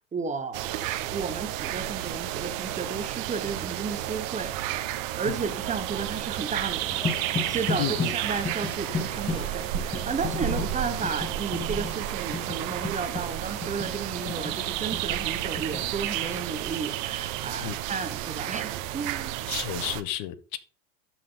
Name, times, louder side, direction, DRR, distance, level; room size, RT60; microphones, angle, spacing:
voice 1, 0.0-19.4, right 5 dB, 15° right, 1.1 m, -33 dB
sound 1, 0.5-20.0, right 13 dB, 60° right, 1.2 m, -32 dB
sound 2, 6.9-15.9, left 4 dB, 10° left, 0.9 m, -35 dB
voice 2, 7.8-8.1 10.4-10.7 17.6-17.8 19.5-20.6, left 14 dB, 50° left, 1.1 m, -32 dB
12.0 x 6.2 x 3.8 m
supercardioid pair, 125°, 43 cm